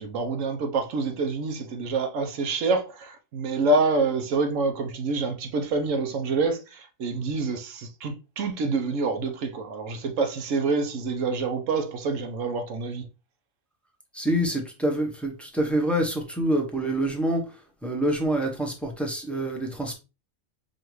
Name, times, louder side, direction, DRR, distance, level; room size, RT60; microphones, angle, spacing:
voice 1, 0.0-13.0, right 3 dB, 90° right, 1.1 m, -27 dB
voice 2, 14.1-17.5 17.8-19.9, right 1 dB, ahead, 0.6 m, -26 dB
5.0 x 2.5 x 3.0 m
omnidirectional pair, 1.3 m